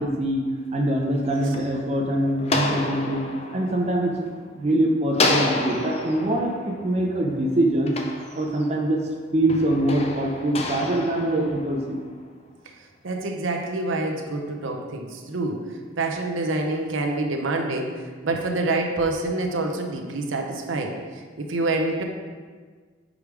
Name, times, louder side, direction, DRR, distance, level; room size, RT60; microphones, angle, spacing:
voice 1, 0.0-3.2 3.5-4.1 4.5-7.9 8.3-9.0 9.3-12.0, right 1 dB, 30° right, 0 dB, 0.6 m, -23 dB
sound 1, 1.0-4.7 5.1-8.9 9.5-12.2, left 2 dB, 30° left, 0.5 m, -30 dB
voice 2, 13.0-22.0, right 2 dB, 80° right, 3 dB, 0.7 m, -27 dB
5.0 x 5.0 x 4.8 m, 1.5 s
head